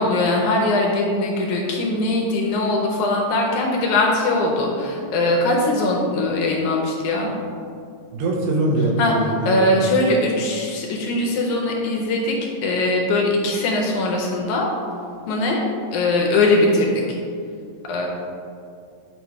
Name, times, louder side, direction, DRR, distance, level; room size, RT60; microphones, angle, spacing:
voice 1, 0.0-7.3 9.0-9.1 9.5-12.4 12.6-14.7 15.3-15.6 15.9-16.9 17.9-18.1, left 2 dB, 75° left, -1 dB, 1.9 m, -21 dB
voice 2, 8.1-9.7, right 1 dB, 85° right, -1 dB, 2.5 m, -22 dB
8.2 x 3.0 x 4.6 m, 2.4 s
omnidirectional pair, 3.8 m